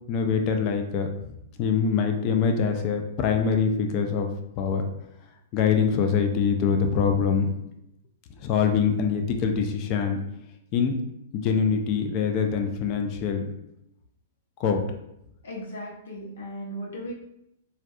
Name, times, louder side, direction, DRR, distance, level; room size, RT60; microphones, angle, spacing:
voice 1, 0.1-1.1 1.6-4.3 4.6-4.8 5.5-7.5 8.4-10.2 10.7-11.0 11.3-13.5 14.6-14.8, left 6 dB, 35° left, 4 dB, 0.3 m, -24 dB
voice 2, 15.4-17.1, equal, 80° left, -3 dB, 0.7 m, -36 dB
2.3 x 2.2 x 2.6 m, 0.82 s
hypercardioid pair, 140°, 0 cm